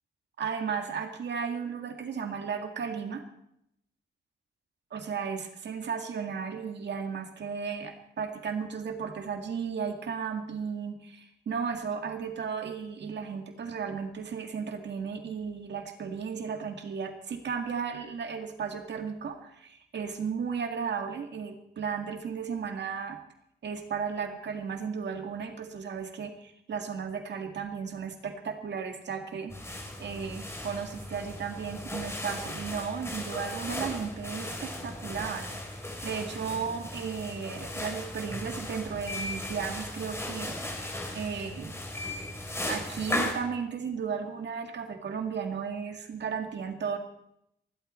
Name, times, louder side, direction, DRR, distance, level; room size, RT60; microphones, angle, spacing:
voice 1, 0.4-3.2 4.9-23.2 23.6-35.5 36.0-41.7 42.7-47.0, right 6 dB, 70° right, 5 dB, 1.9 m, -35 dB
sound 1, 29.5-43.3, left 1 dB, 15° left, 3.1 m, -37 dB
27.5 x 12.0 x 4.3 m, 0.75 s
wide cardioid pair, 125°, 19 cm